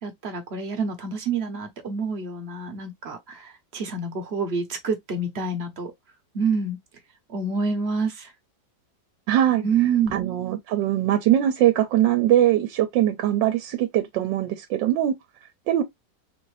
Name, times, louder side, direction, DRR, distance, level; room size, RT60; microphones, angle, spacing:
voice 1, 0.0-5.9 6.3-6.8 7.3-8.3 9.6-10.1, right 5 dB, 45° right, 0.9 m, -27 dB
voice 2, 9.3-9.6 10.1-15.1 15.7-15.8, right 12 dB, 90° right, 1.3 m, -21 dB
3.9 x 2.6 x 3.1 m
omnidirectional pair, 1.9 m